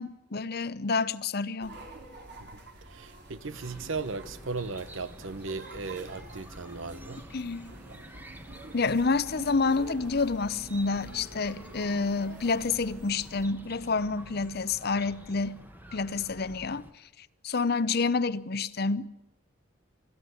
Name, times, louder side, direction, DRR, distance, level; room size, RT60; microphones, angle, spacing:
voice 1, 0.0-1.8 7.3-7.7 8.7-15.6 15.9-16.9 17.4-19.1, left 4 dB, 50° left, 0.7 m, -28 dB
sound 1, 1.6-13.5, right 2 dB, 55° right, 3.9 m, -47 dB
voice 2, 2.9-7.2, right 4 dB, 75° right, 1.0 m, -36 dB
Chirp tweet, 3.5-16.9, equal, 10° right, 1.3 m, -49 dB
25.0 x 15.0 x 9.5 m
head